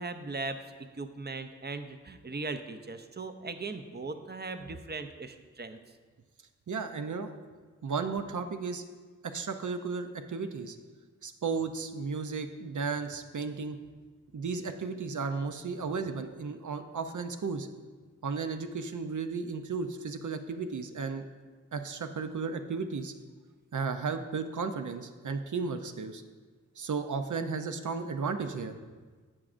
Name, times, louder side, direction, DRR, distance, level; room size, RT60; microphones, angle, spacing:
voice 1, 0.0-5.8, right 3 dB, 35° right, 9 dB, 0.5 m, -39 dB
voice 2, 6.7-7.4 7.8-8.8 9.2-10.8 11.2-13.8 14.3-17.7 18.2-21.2 21.7-23.1 23.7-26.2 26.8-28.8, right 5 dB, 85° right, 8 dB, 0.6 m, -34 dB
11.0 x 7.3 x 2.5 m, 1.4 s
wide cardioid pair, 65°, 29 cm